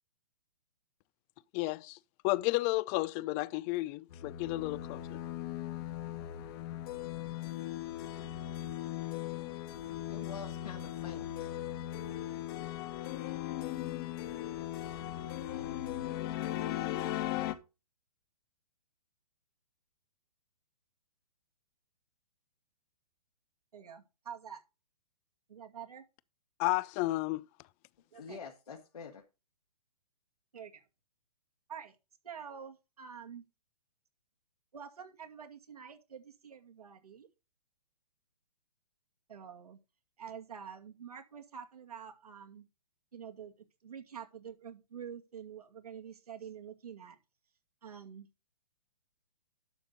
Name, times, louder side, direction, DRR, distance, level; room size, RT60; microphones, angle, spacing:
voice 1, 1.5-2.0 2.2-5.2 26.6-27.4, left 20 dB, 25° left, 0.4 m, -32 dB
sound 1, 4.1-17.5, left 13 dB, 40° left, 1.4 m, -38 dB
voice 2, 10.1-11.5 28.2-29.2, left 5 dB, 75° left, 2.2 m, -46 dB
voice 3, 23.7-24.6 25.5-26.0 28.1-28.4 30.5-30.8 31.7-32.0 32.2-33.4 34.7-37.3 39.3-39.8 40.2-42.7 43.1-43.5 43.8-47.2 47.8-48.3, right 7 dB, 75° right, 2.3 m, -47 dB
11.5 x 6.7 x 4.0 m
hypercardioid pair, 130°, 20 cm